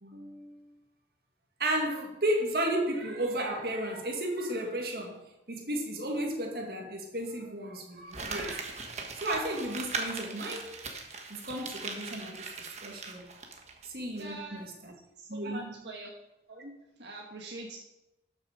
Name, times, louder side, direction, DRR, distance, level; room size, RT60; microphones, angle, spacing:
voice 1, 0.0-0.7 1.6-8.9 9.1-10.7 11.3-13.3 13.8-14.9 15.3-15.7, right 1 dB, 55° right, 2.1 m, -34 dB
Crumpling crinkling, 8.1-13.9 14.2-14.3, right 4 dB, 40° right, 1.4 m, -40 dB
voice 2, 14.2-14.6 15.2-16.1 16.5-16.7 17.0-17.8, right 2 dB, 75° right, 1.5 m, -43 dB
12.5 x 6.5 x 5.0 m
head